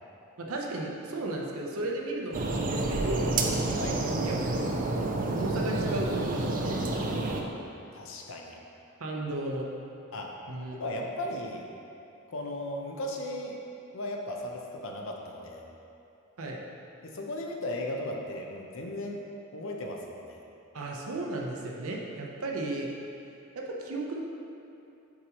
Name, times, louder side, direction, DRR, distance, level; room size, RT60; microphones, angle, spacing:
voice 1, 0.4-3.4 4.0-4.5 5.3-7.1 9.0-9.7 10.5-10.8 16.4-16.6 20.7-22.9 23.5-24.2, right 2 dB, 80° right, -1 dB, 0.8 m, -35 dB
sound 1, 2.3-7.4, right 2 dB, 40° right, 0.5 m, -29 dB
voice 2, 7.9-8.6 10.1-10.3 10.7-11.6 12.3-13.6 13.9-15.7 17.0-19.2 19.5-20.4, left 1 dB, 65° left, 1 dB, 0.7 m, -36 dB
7.3 x 4.6 x 3.0 m, 2.8 s
head